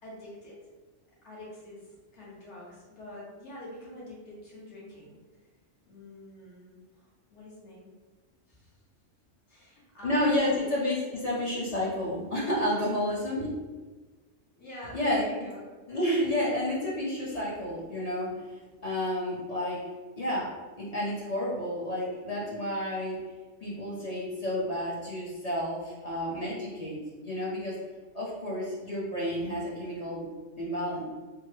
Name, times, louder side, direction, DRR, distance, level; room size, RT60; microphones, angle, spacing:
voice 1, 0.0-0.6 1.2-5.2 5.9-7.9 8.5-8.8 9.5-10.7 11.0-11.1 14.6-15.8, left 1 dB, 65° left, -6 dB, 1.4 m, -46 dB
voice 2, 10.0-11.0 11.2-13.5 14.9-15.2 15.9-18.6 18.8-19.8 20.2-20.5 20.8-23.2 23.6-27.0 27.2-27.8 28.1-30.2 30.6-31.0, left 1 dB, 35° left, -7 dB, 0.7 m, -30 dB
3.5 x 2.1 x 3.2 m, 1.3 s
omnidirectional pair, 1.3 m